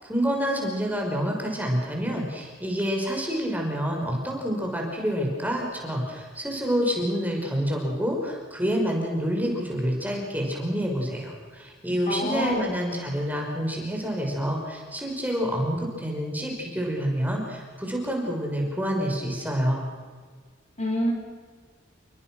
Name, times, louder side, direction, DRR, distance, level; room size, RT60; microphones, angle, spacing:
voice 1, 0.0-19.8, equal, 10° right, 0 dB, 5.7 m, -28 dB
voice 2, 12.1-12.7 20.8-21.1, equal, 35° left, 2 dB, 4.8 m, -26 dB
30.0 x 23.5 x 6.3 m, 1.5 s
head